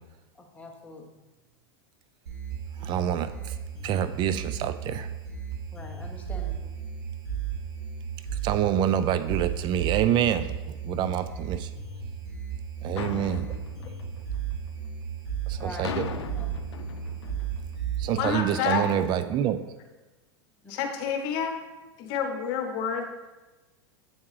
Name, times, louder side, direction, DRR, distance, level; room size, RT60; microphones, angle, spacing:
voice 1, 0.3-1.0 5.7-6.7 15.6-16.6, left 1 dB, 10° left, 1 dB, 1.0 m, -44 dB
sound 1, 2.3-18.3, right 7 dB, 65° right, 1.9 m, -35 dB
voice 2, 2.8-3.5 3.8-5.1 8.4-10.5 10.8-11.7 12.8-13.5 15.5-16.1 18.0-19.6, right 10 dB, 35° right, 12 dB, 0.4 m, -26 dB
sound 2, 13.0-14.9 15.8-17.8, left 8 dB, 90° left, 0.5 m, -38 dB
voice 3, 18.1-19.0 20.7-21.5 22.0-23.0, left 6 dB, 55° left, 4 dB, 1.0 m, -28 dB
8.7 x 3.5 x 3.3 m, 1.2 s
hypercardioid pair, 110°, 14 cm